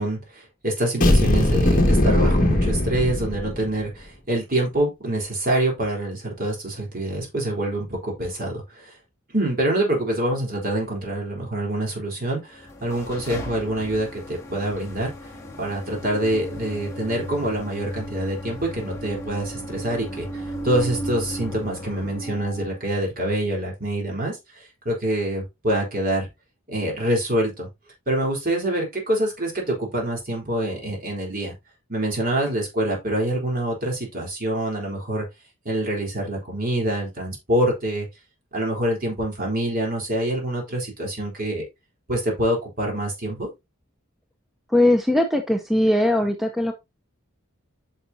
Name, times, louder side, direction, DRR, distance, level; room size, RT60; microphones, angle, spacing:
voice 1, 0.0-8.9 9.3-15.1 15.6-20.3 20.6-24.4 24.9-26.3 26.7-27.7 28.1-31.5 31.9-35.2 35.7-38.1 38.5-41.6 42.1-43.5, right 1 dB, 45° right, 3.7 m, -25 dB
sound 1, 1.0-3.8, left 1 dB, 40° left, 1.7 m, -19 dB
sound 2, 12.5-22.9, equal, 15° left, 1.7 m, -35 dB
voice 2, 44.7-46.7, left 1 dB, ahead, 0.7 m, -20 dB
9.4 x 5.8 x 2.7 m
head